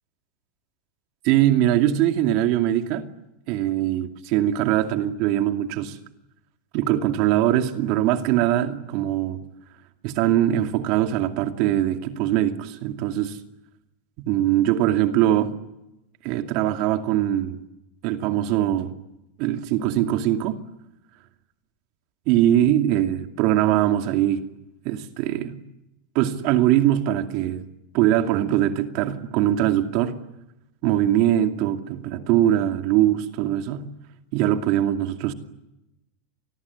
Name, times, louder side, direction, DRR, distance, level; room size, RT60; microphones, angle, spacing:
voice 1, 1.2-3.0 3.5-6.0 6.7-9.4 10.0-13.4 14.2-15.5 16.2-17.6 18.0-18.9 19.4-20.6 22.3-24.4 24.8-25.6 26.1-27.7 27.9-30.2 30.8-33.9 34.3-35.3, right 12 dB, 55° right, 2.4 m, -22 dB
27.5 x 20.0 x 9.7 m
hypercardioid pair, 105°, 0 cm